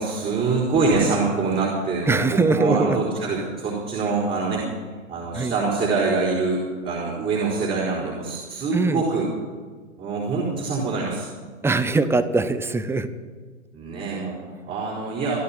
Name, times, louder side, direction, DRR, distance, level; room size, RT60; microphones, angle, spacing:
voice 1, 0.0-4.7 5.1-9.3 10.0-11.3 13.7-15.4, right 4 dB, 25° right, -4 dB, 4.5 m, -25 dB
voice 2, 2.1-3.0 5.4-5.5 8.7-9.0 11.6-13.1, right 3 dB, 5° right, 14 dB, 0.7 m, -21 dB
25.5 x 12.5 x 4.3 m, 1.5 s
figure-of-eight pair, 110°, 38 cm